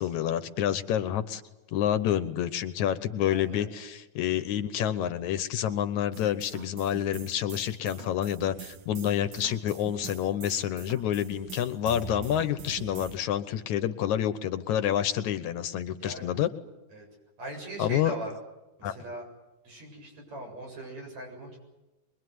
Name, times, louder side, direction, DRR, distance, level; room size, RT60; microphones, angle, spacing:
voice 1, 0.0-1.4 1.7-16.5 17.8-18.1 18.8-18.9, left 10 dB, 75° left, 11 dB, 2.3 m, -28 dB
voice 2, 3.3-3.7 16.0-16.4 16.9-17.1 17.4-18.3 18.8-19.2 19.6-21.6, right 1 dB, 60° right, 1 dB, 8.8 m, -40 dB
sound 1, 6.1-13.2, right 7 dB, 75° right, 2.9 m, -44 dB
24.0 x 22.5 x 9.5 m, 1.0 s
omnidirectional pair, 3.6 m